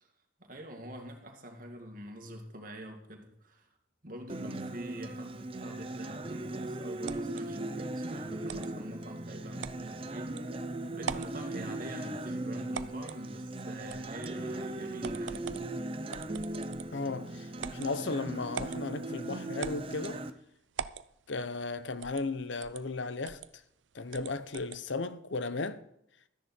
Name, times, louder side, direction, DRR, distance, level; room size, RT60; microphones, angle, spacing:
voice 1, 0.4-3.7 4.0-10.4 10.9-15.7, equal, 45° right, 2.3 m, -45 dB
Acoustic guitar, 4.3-20.3, right 1 dB, 30° right, 0.7 m, -38 dB
sound 1, 7.1-7.4 8.5-8.7 9.6-9.8 10.4-10.5 11.0-11.4 12.7-13.2 13.9-14.3 15.0-15.7 16.1-17.0 17.6-17.9 18.5-18.8 19.6-20.2 20.8-21.1 22.0-22.3 22.6-22.8 23.2-23.5 24.1-24.8, right 6 dB, 75° right, 0.6 m, -41 dB
voice 2, 16.9-20.2 21.3-23.6 23.9-25.8, left 3 dB, 75° left, 0.9 m, -35 dB
13.5 x 10.5 x 4.4 m
head